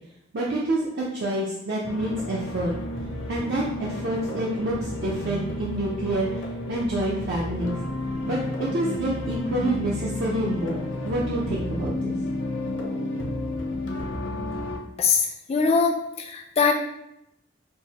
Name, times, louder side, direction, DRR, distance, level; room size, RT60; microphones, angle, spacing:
voice 1, 0.3-2.7 3.3-7.8 8.3-10.8 11.0-12.2, right 1 dB, 55° right, -5 dB, 0.5 m, -27 dB
sound 1, 1.8-14.8, left 1 dB, 70° left, 0.6 m, -31 dB
voice 2, 15.0-16.7, left 5 dB, 30° left, 4 dB, 0.3 m, -22 dB
4.5 x 2.1 x 2.8 m, 0.82 s
head